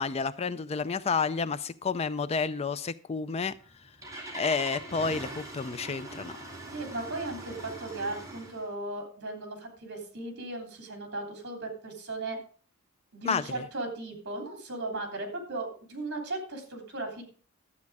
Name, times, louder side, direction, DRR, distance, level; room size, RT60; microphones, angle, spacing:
voice 1, 0.0-3.5 4.3-6.3 13.2-13.6, left 5 dB, 30° left, 15 dB, 0.4 m, -30 dB
Engine starting, 3.5-8.7, right 1 dB, 15° right, 2.8 m, -42 dB
voice 2, 6.7-12.4 13.1-17.2, right 2 dB, 55° right, 4 dB, 3.3 m, -36 dB
12.0 x 8.3 x 4.8 m, 0.42 s
head